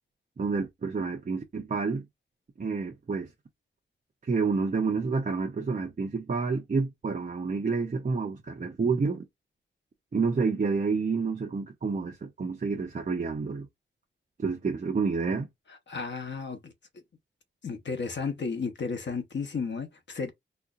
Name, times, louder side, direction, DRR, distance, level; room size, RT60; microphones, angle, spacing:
voice 1, 0.4-2.0 2.6-3.3 4.3-9.3 10.1-13.7 14.4-15.5, right 4 dB, 40° right, 0.8 m, -29 dB
voice 2, 15.9-16.7 17.6-20.3, left 5 dB, 60° left, 1.0 m, -33 dB
4.4 x 2.5 x 2.4 m
wide cardioid pair, 145°, 20 cm